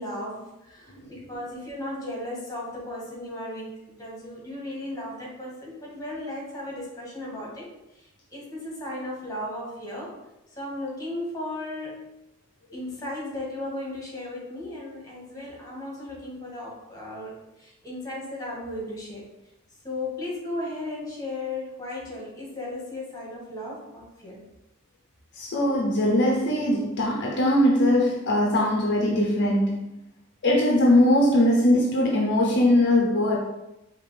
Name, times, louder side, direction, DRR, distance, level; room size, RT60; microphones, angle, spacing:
voice 1, 0.0-7.7 7.9-10.1 10.6-12.0 12.7-19.2 19.8-24.4, left 1 dB, 15° left, -4 dB, 1.5 m, -35 dB
voice 2, 25.3-30.0 30.4-33.4, left 1 dB, 55° left, -2 dB, 0.6 m, -21 dB
5.0 x 2.9 x 3.3 m, 0.93 s
head